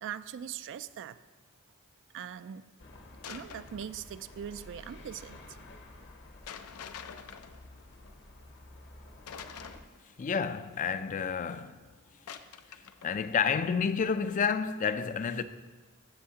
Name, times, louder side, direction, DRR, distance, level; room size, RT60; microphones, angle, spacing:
voice 1, 0.0-1.2 2.1-2.7 3.3-5.4, right 8 dB, 55° right, 0.3 m, -41 dB
sound 1, 2.8-9.8, left 2 dB, 50° left, 0.8 m, -51 dB
sound 2, 3.2-4.0 6.5-8.1 9.3-10.2 12.3-13.1, left 7 dB, 90° left, 0.5 m, -46 dB
voice 2, 10.2-11.8 13.0-15.4, left 6 dB, 35° left, 0.3 m, -30 dB
16.0 x 6.5 x 2.8 m
head